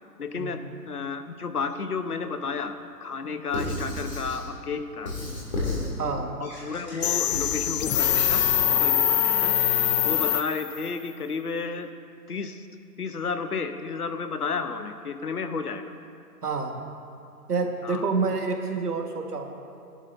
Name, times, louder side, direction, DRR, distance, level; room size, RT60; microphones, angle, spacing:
voice 1, 0.2-0.6 0.9-2.7 3.0-5.1 6.4-8.4 8.7-9.5 10.0-11.9 12.3-12.7 13.0-15.8 17.8-18.0, left 5 dB, 65° left, 9 dB, 1.0 m, -32 dB
Squeak / Writing, 3.5-4.4 5.1-5.9 6.4-8.6, left 2 dB, 25° left, 2.3 m, -33 dB
voice 2, 6.0-6.3 16.4-16.8 17.5-19.5, right 4 dB, 65° right, 3 dB, 1.7 m, -28 dB
sound 1, 7.0-10.9, left 10 dB, 90° left, 0.6 m, -23 dB
21.5 x 11.5 x 2.7 m, 2.5 s
hypercardioid pair, 180°, 49 cm